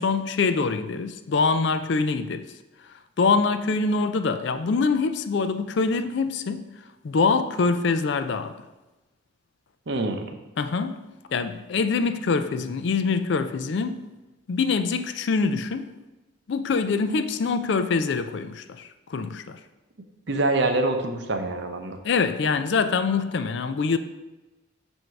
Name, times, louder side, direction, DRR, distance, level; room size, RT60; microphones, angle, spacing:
voice 1, 0.0-2.5 3.2-6.7 7.0-8.6 10.6-11.0 11.3-14.1 14.5-15.9 16.5-19.6 22.0-24.0, left 4 dB, 55° left, 0.4 m, -24 dB
voice 2, 9.9-10.3 20.3-22.0, right 2 dB, 55° right, 0.6 m, -25 dB
7.7 x 2.7 x 5.7 m
head